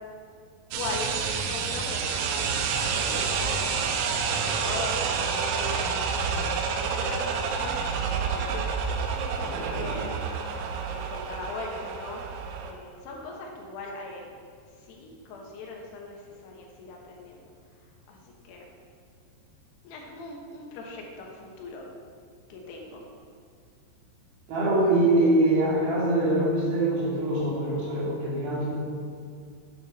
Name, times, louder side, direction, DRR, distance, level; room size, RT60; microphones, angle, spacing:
voice 1, 0.7-2.5 2.8-7.8 8.2-10.2 10.8-12.2 12.6-14.3 14.9-17.5 18.1-18.7 19.8-21.9 22.5-23.1, left 3 dB, 70° left, 0 dB, 3.1 m, -40 dB
sound 1, 0.7-12.7, right 6 dB, 90° right, 3.2 m, -29 dB
voice 2, 9.5-10.0 24.5-28.7, right 1 dB, 60° right, -5 dB, 3.9 m, -24 dB
9.2 x 8.8 x 4.2 m, 2.2 s
omnidirectional pair, 5.3 m